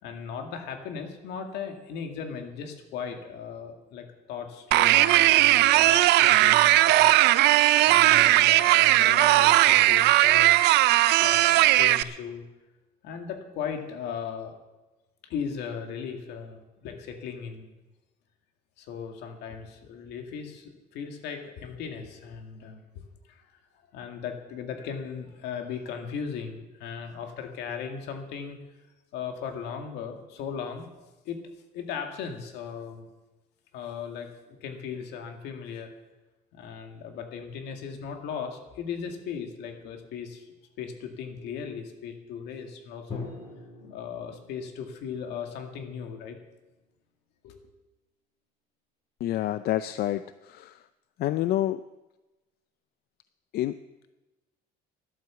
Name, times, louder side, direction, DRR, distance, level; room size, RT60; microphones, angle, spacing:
voice 1, 0.0-7.3 7.8-10.6 11.2-12.4 13.0-14.5 15.2-17.7 18.8-23.6 23.9-28.6 29.1-30.9 31.3-31.4 31.7-33.1 33.7-35.9 36.5-43.4 43.8-46.4 47.4-47.7, left 7 dB, 85° left, 4 dB, 2.1 m, -37 dB
sound 1, 4.7-12.0, right 16 dB, 85° right, 0.5 m, -18 dB
Drum, 43.1-46.9, left 3 dB, 35° left, 4.0 m, -44 dB
voice 2, 49.2-50.2 50.5-50.7 51.2-51.8 53.5-53.7, left 13 dB, 70° left, 13 dB, 0.5 m, -27 dB
12.5 x 11.5 x 7.1 m, 1.1 s
cardioid pair, 110°, 17 cm